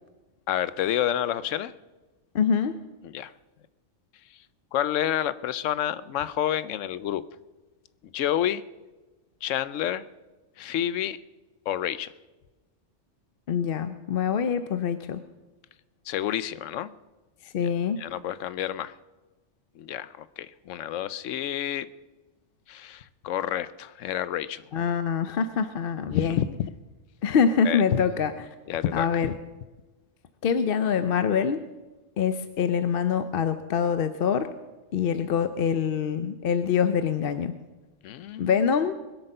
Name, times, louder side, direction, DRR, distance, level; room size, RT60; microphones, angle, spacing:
voice 1, 0.5-1.7 3.0-3.3 4.7-7.2 8.1-8.6 9.4-10.0 10.6-11.2 11.7-12.1 16.1-16.9 17.6-17.7 18.0-18.9 19.8-21.9 22.7-24.6 26.1-26.7 27.6-28.0 28.7-29.3 38.0-38.6, left 11 dB, 90° left, 16 dB, 1.0 m, -29 dB
voice 2, 2.3-2.7 13.5-15.2 17.4-18.0 24.7-26.4 27.2-28.5 28.9-29.3 30.4-31.6 32.2-34.5 34.9-37.5 38.4-38.9, left 7 dB, 55° left, 11 dB, 0.7 m, -25 dB
21.0 x 8.2 x 6.6 m, 1.2 s
omnidirectional pair, 1.2 m